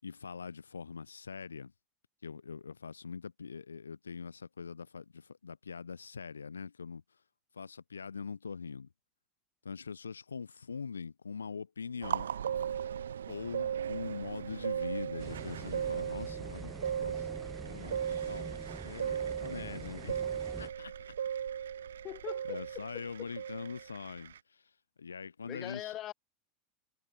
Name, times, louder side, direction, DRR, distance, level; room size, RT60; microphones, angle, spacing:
voice 1, 0.0-1.7 2.2-7.0 7.5-8.9 9.6-12.3 13.3-20.3 20.6-20.9 22.5-24.6 25.0-25.9, left 5 dB, 80° left, 4.6 m, -43 dB
sound 1, 12.0-24.4, right 8 dB, 70° right, 1.0 m, -37 dB
sound 2, 15.2-20.7, right 3 dB, 10° right, 4.5 m, -46 dB
voice 2, 22.0-23.3 25.4-26.1, left 14 dB, 40° left, 5.6 m, -42 dB
figure-of-eight pair, 80°, 0 cm